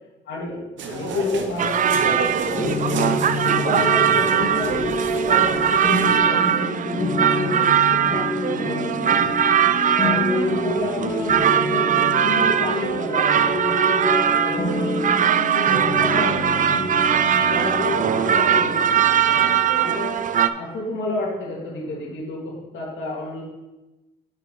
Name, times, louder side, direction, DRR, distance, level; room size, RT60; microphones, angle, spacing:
voice 1, 0.3-9.3 9.6-16.8 17.4-20.2 20.5-23.4, left 3 dB, 70° left, -3 dB, 2.2 m, -30 dB
sound 1, 0.8-6.2, right 4 dB, 70° right, 0.9 m, -32 dB
sound 2, 1.6-20.5, right 9 dB, 40° right, 0.4 m, -21 dB
sound 3, 2.6-22.1, left 1 dB, 35° left, 2.2 m, -28 dB
6.0 x 5.7 x 5.4 m, 1.1 s
cardioid pair, 90°, 20 cm